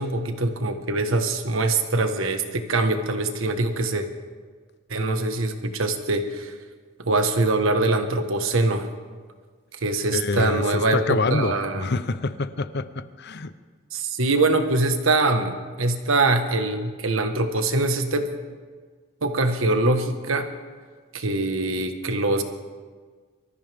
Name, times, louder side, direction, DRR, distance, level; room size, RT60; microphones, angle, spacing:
voice 1, 0.0-4.1 4.9-6.5 7.0-8.9 9.7-11.9 13.9-18.3 19.2-20.5 21.1-22.4, right 2 dB, 70° right, 7 dB, 1.3 m, -23 dB
voice 2, 10.1-13.5, left 3 dB, 50° left, 13 dB, 0.6 m, -26 dB
24.5 x 14.0 x 3.5 m, 1.5 s
head